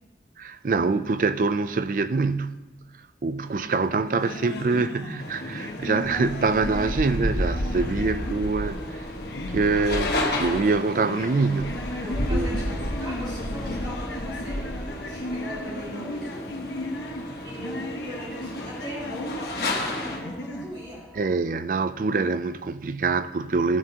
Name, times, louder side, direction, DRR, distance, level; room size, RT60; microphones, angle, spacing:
voice 1, 0.4-2.6 3.2-8.8 9.5-11.8 12.3-12.9 21.2-23.8, right 4 dB, 45° right, 0.4 m, -25 dB
sound 1, 3.5-20.7, left 1 dB, 80° left, 1.0 m, -37 dB
sound 2, 5.2-20.2, left 1 dB, 60° left, 1.4 m, -31 dB
voice 2, 8.5-9.0 12.0-16.7 17.4-21.1, equal, 25° right, 2.7 m, -39 dB
sound 3, 10.3-21.4, equal, 5° left, 1.0 m, -49 dB
14.5 x 9.1 x 2.9 m
head